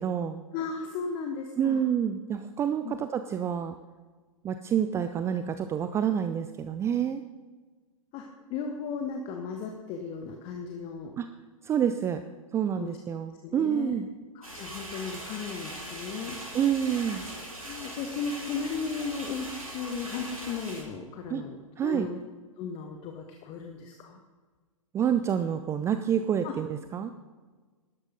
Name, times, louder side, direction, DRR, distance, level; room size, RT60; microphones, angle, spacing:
voice 1, 0.0-0.4 1.6-3.8 4.4-7.2 11.2-11.3 11.6-12.2 12.5-14.1 16.5-17.2 21.3-21.4 21.8-22.1 24.9-27.1, right 8 dB, 15° right, 9 dB, 0.5 m, -28 dB
voice 2, 0.5-1.8 2.8-3.0 8.1-11.1 12.8-13.9 14.3-16.4 17.6-22.2 22.6-24.2 26.4-26.5, left 5 dB, 35° left, 3 dB, 1.4 m, -36 dB
sound 1, 14.4-20.8, right 1 dB, 85° right, 4.4 m, -40 dB
12.5 x 11.5 x 5.3 m, 1.4 s
figure-of-eight pair, 115°, 17 cm